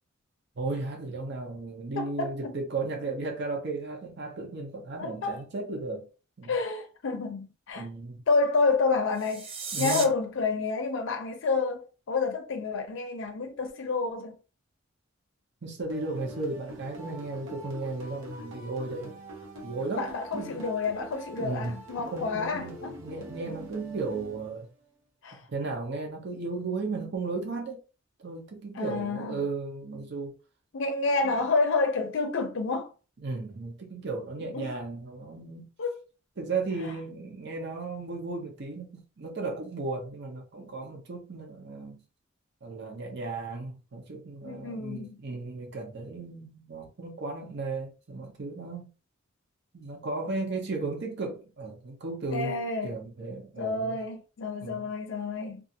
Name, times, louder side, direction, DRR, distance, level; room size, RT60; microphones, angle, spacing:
voice 1, 0.6-6.1 6.4-6.5 7.8-8.2 9.7-10.1 15.6-19.2 19.6-20.7 21.4-21.8 22.1-24.7 25.5-27.8 28.2-30.3 33.2-35.7 36.4-42.0 42.6-48.9 49.7-52.6 52.8-54.0 54.6-54.9, right 3 dB, 55° right, 0.7 m, -35 dB
voice 2, 2.0-2.5 5.0-5.4 6.5-7.8 8.3-9.5 9.8-14.4 20.0-22.9 25.2-25.4 28.7-29.4 30.7-32.9 34.5-34.7 35.8-36.0 44.4-45.2 52.3-53.0 53.6-55.6, left 4 dB, 65° left, 0.5 m, -29 dB
sound 1, 9.1-10.0, right 5 dB, 30° right, 0.4 m, -34 dB
sound 2, 15.9-24.8, right 1 dB, 85° right, 0.9 m, -44 dB
2.4 x 2.4 x 2.7 m
head